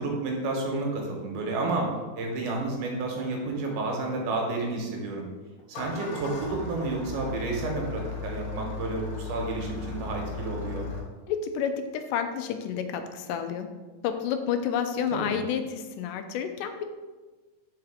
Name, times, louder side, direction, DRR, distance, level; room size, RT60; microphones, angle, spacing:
voice 1, 0.0-1.9 2.2-5.3 5.7-10.9 15.1-15.4, right 3 dB, 80° right, 0 dB, 2.5 m, -31 dB
Engine starting, 5.6-11.0, left 5 dB, 70° left, 2.2 m, -36 dB
voice 2, 11.3-13.7 14.0-16.8, left 8 dB, 90° left, 8 dB, 2.1 m, -30 dB
4.8 x 4.7 x 4.7 m, 1.3 s
omnidirectional pair, 3.7 m